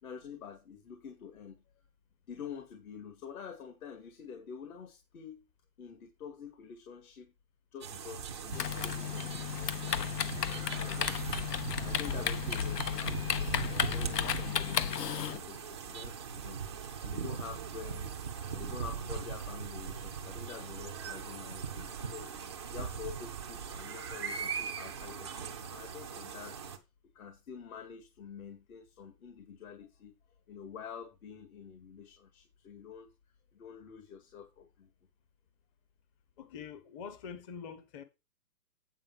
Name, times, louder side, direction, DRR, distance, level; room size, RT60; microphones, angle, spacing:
voice 1, 0.0-1.6 2.3-5.4 5.8-7.3 7.7-11.3 11.6-13.2 13.5-22.3 22.7-26.6 27.1-30.1 30.5-33.1 33.5-34.9, left 7 dB, 60° left, 2.1 m, -47 dB
sound 1, 7.8-26.8, right 6 dB, 20° right, 0.4 m, -40 dB
Typing, 8.5-15.4, left 9 dB, 80° left, 0.9 m, -33 dB
voice 2, 36.4-38.0, left 6 dB, 20° left, 0.7 m, -45 dB
8.9 x 5.1 x 5.4 m
hypercardioid pair, 145°, 48 cm